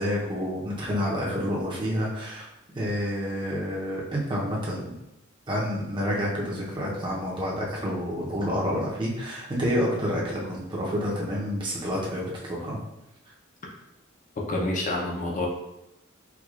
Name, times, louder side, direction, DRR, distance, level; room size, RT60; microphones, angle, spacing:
voice 1, 0.0-2.4 2.7-4.9 5.5-12.8, equal, 25° right, -4 dB, 0.7 m, -28 dB
voice 2, 14.5-15.5, left 2 dB, 40° left, -1 dB, 0.6 m, -27 dB
4.6 x 2.3 x 2.4 m, 0.90 s
head